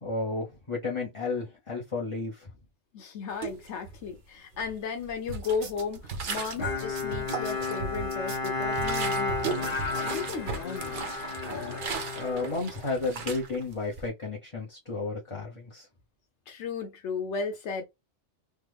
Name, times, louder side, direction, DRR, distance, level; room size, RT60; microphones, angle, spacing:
voice 1, 0.0-2.5 12.1-15.9, left 3 dB, 30° left, 0.8 m, -32 dB
voice 2, 2.9-11.1 16.5-17.8, left 5 dB, 80° left, 1.0 m, -35 dB
sound 1, 3.3-4.2 4.5-6.7 7.1-8.0 8.4-14.1, right 5 dB, 55° right, 0.8 m, -38 dB
sound 2, 5.3-10.6, right 3 dB, 85° right, 1.3 m, -38 dB
Bowed string instrument, 6.6-13.3, left 3 dB, 55° left, 1.2 m, -32 dB
3.4 x 2.1 x 3.4 m
omnidirectional pair, 1.2 m